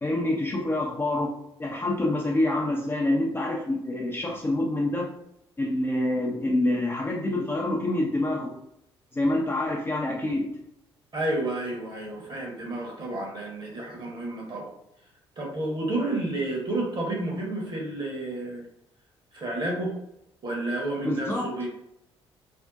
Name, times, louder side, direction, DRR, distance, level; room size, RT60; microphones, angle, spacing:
voice 1, 0.0-1.3 1.6-5.1 5.6-8.5 9.1-10.5 21.0-21.5, left 1 dB, 15° left, -2 dB, 0.5 m, -26 dB
voice 2, 11.1-14.7 15.4-18.6 19.3-19.9 20.4-21.7, right 2 dB, 35° right, -2 dB, 1.0 m, -30 dB
2.6 x 2.1 x 2.4 m, 0.79 s
figure-of-eight pair, 45°, 14 cm